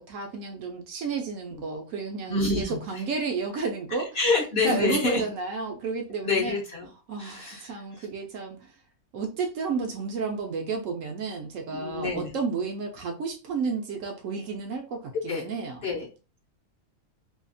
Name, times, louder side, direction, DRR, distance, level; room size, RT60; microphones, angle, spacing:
voice 1, 0.0-4.1 4.6-6.6 7.1-8.8 9.1-15.8, right 4 dB, 70° right, 2 dB, 0.9 m, -32 dB
voice 2, 2.3-2.8 4.1-5.2 6.2-6.9 7.2-7.7 11.7-12.3 15.3-15.4 15.8-16.1, left 3 dB, 55° left, -2 dB, 0.8 m, -27 dB
2.7 x 2.3 x 2.5 m, 0.32 s
omnidirectional pair, 1.6 m